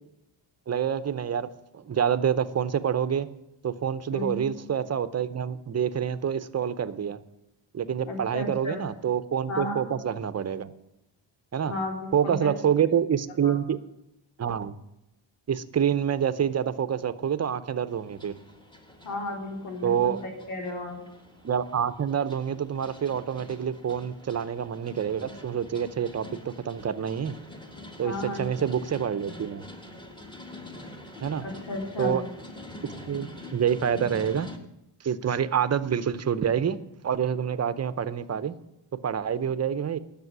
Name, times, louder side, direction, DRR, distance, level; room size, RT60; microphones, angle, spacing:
voice 1, 0.7-1.5 1.7-3.3 3.6-7.2 7.7-10.7 11.5-11.7 12.1-13.8 14.4-14.8 15.5-18.3 19.8-20.2 21.4-27.3 28.0-29.6 31.2-31.4 32.0-32.2 33.1-34.5 35.0-36.8 37.0-38.5 39.0-40.0, right 8 dB, 35° right, 14 dB, 0.7 m, -27 dB
voice 2, 4.1-4.5 8.1-8.9 9.5-9.9 11.6-12.5 13.4-13.6 19.0-21.0 28.0-28.4 31.4-32.2, left 2 dB, 80° left, 2 dB, 3.7 m, -33 dB
sound 1, 17.9-34.6, left 1 dB, 10° left, 1.5 m, -45 dB
11.0 x 7.0 x 9.5 m, 0.88 s
cardioid pair, 130°, 47 cm